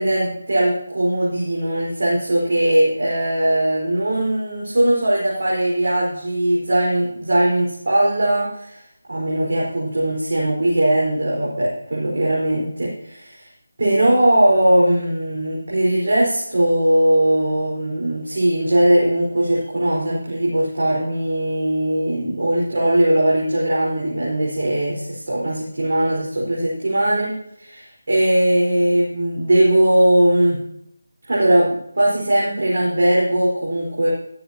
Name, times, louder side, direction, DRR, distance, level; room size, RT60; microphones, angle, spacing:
voice 1, 0.0-8.8 9.1-13.5 13.8-27.3 27.6-30.6 31.2-34.1, right 1 dB, 65° right, -5 dB, 4.5 m, -19 dB
13.5 x 13.0 x 2.9 m, 0.74 s
figure-of-eight pair, 165°, 0 cm